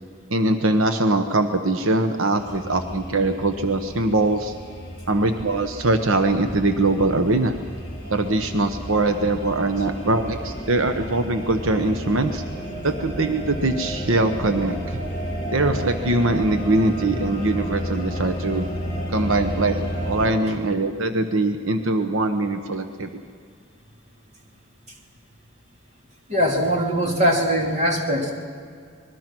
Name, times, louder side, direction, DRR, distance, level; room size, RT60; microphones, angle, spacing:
voice 1, 0.3-4.5 5.1-7.5 8.1-12.4 12.8-15.0 15.5-18.7 19.1-23.1, right 2 dB, 80° right, 7 dB, 1.1 m, -22 dB
sound 1, 2.4-20.3, equal, 30° left, 5.1 m, -32 dB
voice 2, 26.3-28.3, equal, 35° right, 0 dB, 3.0 m, -21 dB
25.5 x 21.5 x 6.2 m, 2.2 s
head